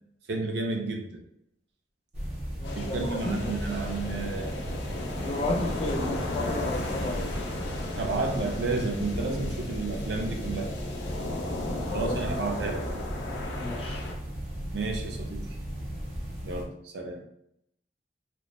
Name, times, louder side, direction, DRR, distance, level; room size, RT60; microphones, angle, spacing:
voice 1, 0.3-1.2 2.7-4.6 8.0-10.7 11.9-12.9 14.7-15.4 16.4-17.2, right 3 dB, 70° right, 2 dB, 0.5 m, -31 dB
sound 1, 2.1-16.6, equal, 40° right, 0.7 m, -36 dB
sound 2, 2.6-14.1, left 2 dB, 85° left, 0.5 m, -35 dB
voice 2, 2.6-3.5 5.2-7.3 11.9-12.4 13.6-14.0, left 2 dB, 35° left, 1 dB, 0.4 m, -33 dB
3.0 x 2.1 x 2.3 m, 0.75 s
head